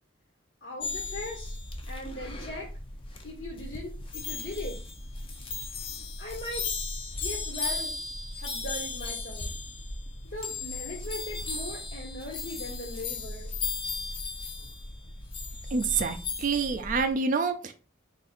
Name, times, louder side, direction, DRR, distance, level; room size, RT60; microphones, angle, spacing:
voice 1, 0.6-1.6 1.9-2.7 3.2-4.8 6.2-6.7 7.2-8.0 8.4-9.5 10.2-13.5, left 1 dB, 60° left, -2 dB, 1.2 m, -39 dB
sound 1, 0.8-17.1, left 3 dB, 25° left, 0.5 m, -36 dB
voice 2, 15.7-17.7, right 4 dB, 40° right, 7 dB, 0.3 m, -27 dB
3.7 x 2.4 x 4.2 m, 0.36 s
head